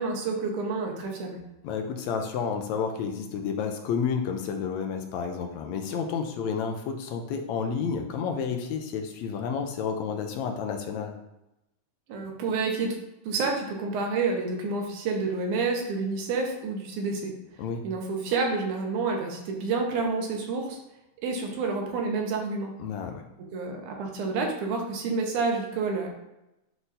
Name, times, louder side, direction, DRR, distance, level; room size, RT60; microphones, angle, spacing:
voice 1, 0.0-1.4 12.1-13.0 13.2-17.3 17.8-20.8 21.2-22.7 23.5-26.1, right 4 dB, 90° right, 1 dB, 2.6 m, -29 dB
voice 2, 1.6-11.2 17.6-17.9 22.8-23.2, left 6 dB, 80° left, 5 dB, 1.9 m, -30 dB
10.5 x 3.9 x 2.7 m, 0.92 s
omnidirectional pair, 3.4 m